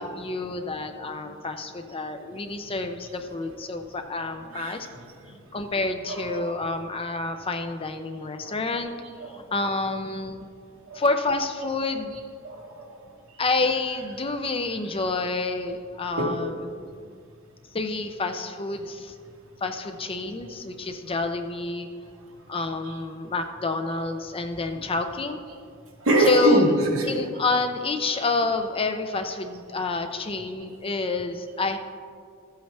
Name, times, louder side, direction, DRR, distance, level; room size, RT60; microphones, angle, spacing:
voice 1, 0.0-4.9 5.5-8.9 9.3-10.5 10.9-12.2 13.4-16.5 17.7-19.1 19.6-21.9 22.5-25.4 26.3-26.6 27.0-31.8, left 3 dB, 25° left, 7 dB, 0.5 m, -28 dB
voice 2, 6.1-6.7 8.4-8.5 9.2-9.4 10.9-11.1 12.1-13.0 13.9-14.2 16.2-16.4 22.8-23.0 26.0-27.2 28.1-28.2 29.2-29.3, right 1 dB, 70° right, 1 dB, 1.4 m, -25 dB
13.5 x 8.0 x 3.3 m, 2.2 s
head